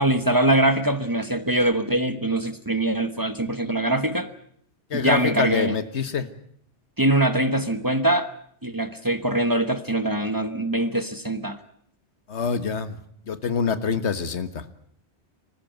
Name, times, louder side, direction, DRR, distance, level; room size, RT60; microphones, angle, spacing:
voice 1, 0.0-4.3 4.9-5.8 7.0-8.3 8.6-11.6, right 1 dB, 20° right, 11 dB, 1.1 m, -23 dB
voice 2, 4.9-6.3 12.3-13.0 13.3-14.7, left 6 dB, 80° left, 12 dB, 1.6 m, -25 dB
25.0 x 15.0 x 9.1 m, 0.67 s
omnidirectional pair, 1.1 m